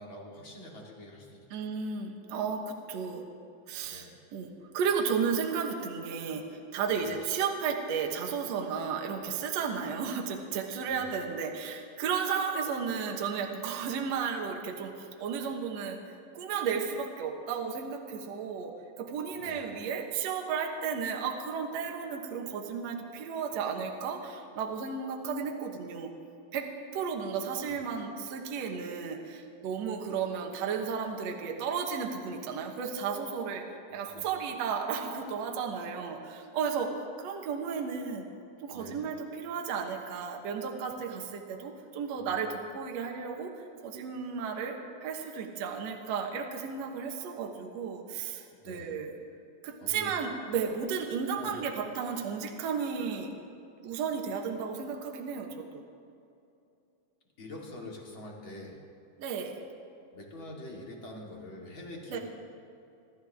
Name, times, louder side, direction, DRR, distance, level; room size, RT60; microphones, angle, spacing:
voice 1, 0.0-1.7 3.8-4.2 7.0-7.2 10.9-11.5 19.3-19.7 27.7-27.8 33.9-34.5 38.7-39.0 42.2-42.4 48.6-49.0 49.8-50.2 51.4-51.6 57.4-58.8 60.1-62.2, left 1 dB, 40° left, -2 dB, 2.9 m, -46 dB
voice 2, 1.5-3.3 3.7-4.1 4.3-6.4 6.7-16.0 16.3-26.1 26.5-33.7 33.9-36.9 37.2-38.3 38.6-43.5 43.8-49.1 49.6-53.3 53.8-55.8 59.2-59.5 62.1-62.2, right 6 dB, 60° right, 2 dB, 2.2 m, -33 dB
26.5 x 13.5 x 3.6 m, 2.7 s
omnidirectional pair, 3.8 m